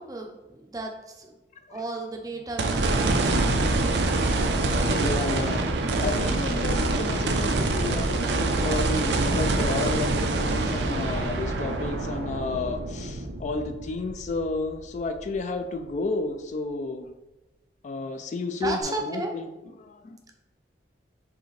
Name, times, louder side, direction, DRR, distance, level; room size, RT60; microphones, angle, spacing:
voice 1, 0.0-1.4 1.7-3.7 18.6-19.3, right 2 dB, 20° right, 2 dB, 0.5 m, -34 dB
sound 1, 2.6-14.9 15.4-15.5 18.8-18.9, right 2 dB, 70° right, 0.5 m, -25 dB
voice 2, 5.0-5.6 6.0-17.1 17.8-19.4 19.8-20.2, left 3 dB, 40° left, 6 dB, 0.3 m, -32 dB
4.8 x 3.3 x 3.2 m, 1.1 s
head